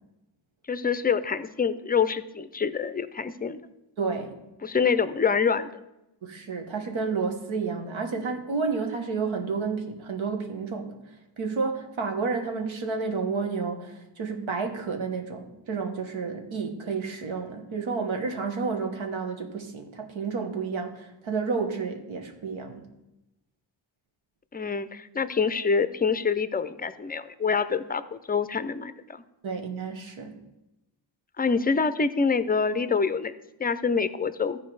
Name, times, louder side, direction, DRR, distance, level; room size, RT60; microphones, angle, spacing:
voice 1, 0.7-3.6 4.6-5.7 24.5-29.2 31.4-33.3 33.6-34.6, left 5 dB, 20° left, 14 dB, 0.4 m, -26 dB
voice 2, 4.0-4.4 6.2-11.0 11.4-22.9 29.4-30.4, right 4 dB, 90° right, 5 dB, 1.3 m, -31 dB
14.0 x 4.7 x 4.7 m, 0.94 s
wide cardioid pair, 95°, 46 cm